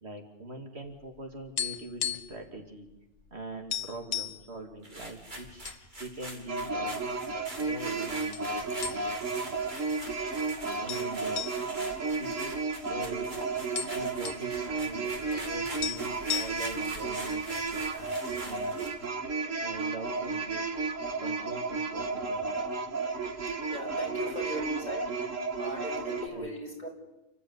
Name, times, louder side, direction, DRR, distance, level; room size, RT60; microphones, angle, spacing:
voice 1, 0.0-2.9 3.3-5.6 6.0-7.0 7.6-8.5 8.9-9.0 10.8-11.4 12.1-13.3 13.8-15.1 15.4-18.8 19.6-20.7 21.2-22.6 26.3-26.5, right 2 dB, 55° right, 4 dB, 2.6 m, -43 dB
sound 1, 1.0-2.5 2.7-2.9 3.3-3.4 3.7-4.5 5.1-5.8 6.2-6.3 7.0-7.6 8.3-8.5 8.8-9.4 9.7-9.8 10.9-12.9 13.2-13.3 13.5-14.5 15.5-15.6 15.8-16.9, left 9 dB, 75° left, 1.3 m, -35 dB
sound 2, 4.8-19.0, right 1 dB, 40° right, 3.3 m, -44 dB
sound 3, 6.5-26.3, right 4 dB, 85° right, 2.1 m, -33 dB
voice 2, 23.7-25.0 25.6-26.9, equal, 35° left, -1 dB, 6.2 m, -38 dB
30.0 x 13.0 x 9.7 m, 0.96 s
omnidirectional pair, 1.3 m